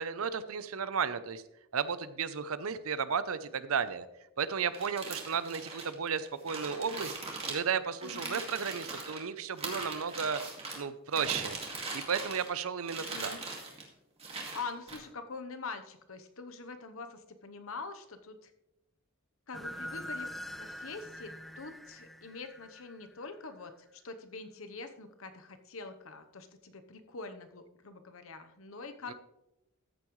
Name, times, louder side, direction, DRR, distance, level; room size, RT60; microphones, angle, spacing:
voice 1, 0.0-1.4 1.7-4.1 4.4-7.1 7.5-10.4 10.7-11.6 11.9-13.3 29.1-29.2, right 6 dB, 80° right, 14 dB, 0.7 m, -33 dB
sound 1, 4.7-9.2 9.6-10.8 11.1-12.6 12.8-13.8 14.2-15.0, right 3 dB, 30° right, 2.1 m, -40 dB
voice 2, 8.0-8.4 13.0-13.4 14.5-18.5 19.5-20.3 20.6-29.1, left 4 dB, 70° left, 8 dB, 1.0 m, -44 dB
sound 2, 19.5-23.5, left 1 dB, ahead, 0.3 m, -44 dB
14.0 x 8.4 x 3.2 m, 0.90 s
head